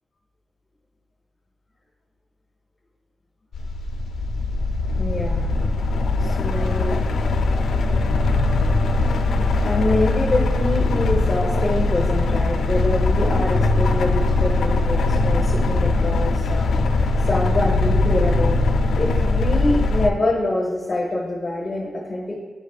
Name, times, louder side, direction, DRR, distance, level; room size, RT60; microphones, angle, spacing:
sound 1, 3.5-20.1, left 2 dB, 75° left, 0.3 m, -20 dB
voice 1, 5.0-5.5 6.2-7.0 9.6-16.7 17.3-18.6 19.0-22.4, left 2 dB, 25° left, -4 dB, 0.9 m, -25 dB
sound 2, 6.4-17.3, equal, 70° right, 1.0 m, -43 dB
10.5 x 5.0 x 2.3 m, 1.4 s
wide cardioid pair, 165°, 0 cm